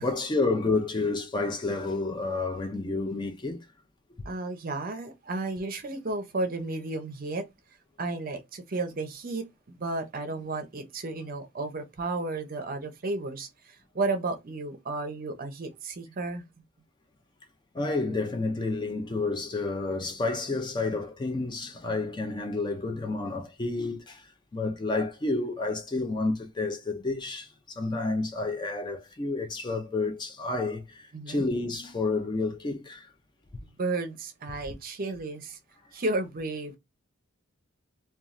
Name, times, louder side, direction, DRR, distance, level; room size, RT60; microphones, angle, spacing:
voice 1, 0.0-3.7 17.7-24.2 24.5-33.1, left 3 dB, 20° left, 0.4 m, -30 dB
voice 2, 4.3-7.4 8.0-16.4 31.1-31.5 33.6-35.6 35.9-36.8, right 2 dB, 45° right, 0.6 m, -33 dB
3.0 x 2.3 x 2.4 m
head